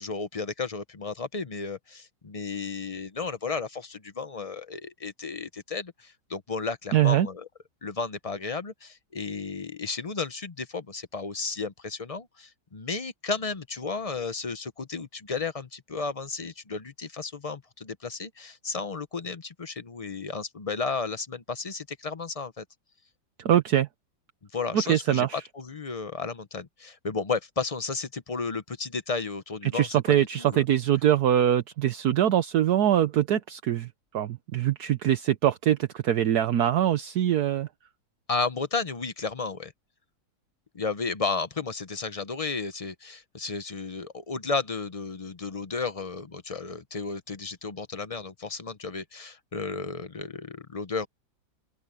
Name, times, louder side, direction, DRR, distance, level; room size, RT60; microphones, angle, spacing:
voice 1, 0.0-7.5 7.8-22.6 24.5-30.6 38.3-39.7 40.7-51.1, left 4 dB, 35° left, 0.5 m, -33 dB
voice 2, 6.9-7.3 23.4-23.9 24.7-25.4 29.7-33.9 34.1-37.7, right 11 dB, 70° right, 1.4 m, -23 dB
open air
omnidirectional pair, 1.8 m